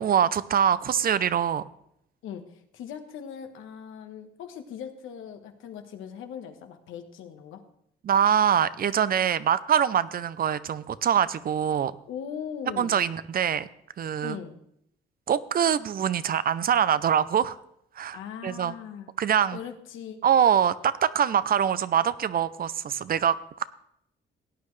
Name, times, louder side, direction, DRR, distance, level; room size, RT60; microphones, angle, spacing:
voice 1, 0.0-1.6 8.0-12.0 12.8-13.7 14.0-14.4 15.3-17.6 18.0-18.2 18.4-18.7 19.2-19.6 20.2-23.7, right 8 dB, 50° right, 16 dB, 0.6 m, -24 dB
voice 2, 2.2-7.6 12.1-13.0 14.2-14.6 18.1-19.1 19.5-20.2, left 8 dB, 85° left, 7 dB, 1.3 m, -39 dB
17.0 x 9.5 x 3.3 m, 0.74 s
cardioid pair, 90°, 20 cm